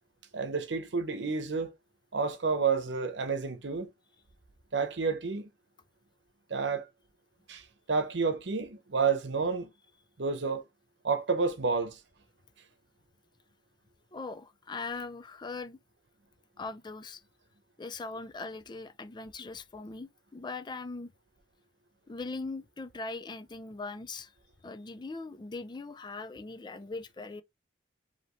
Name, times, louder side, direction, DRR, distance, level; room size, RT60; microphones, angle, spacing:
voice 1, 0.3-1.7 2.1-3.9 4.7-5.5 6.5-6.9 7.5-9.7 10.2-10.6 11.0-12.0, right 5 dB, 80° right, 0.8 m, -30 dB
voice 2, 14.1-15.8 16.6-17.2 17.8-21.1 22.1-24.3 24.6-27.4, left 3 dB, 25° left, 0.4 m, -40 dB
5.0 x 2.9 x 3.1 m
head